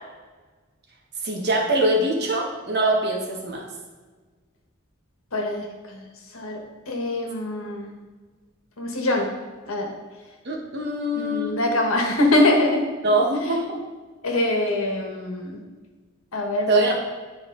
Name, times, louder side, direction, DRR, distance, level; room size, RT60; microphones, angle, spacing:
voice 1, 1.2-3.7 10.4-11.6 13.0-13.6 16.7-17.0, right 1 dB, 55° right, -1 dB, 1.4 m, -23 dB
voice 2, 5.3-6.1 6.3-7.9 8.8-9.3 9.7-9.9 11.1-12.8 13.5-13.6 14.2-15.6 16.3-16.8, left 1 dB, 90° left, 2 dB, 1.3 m, -24 dB
10.0 x 4.4 x 3.9 m, 1.4 s
head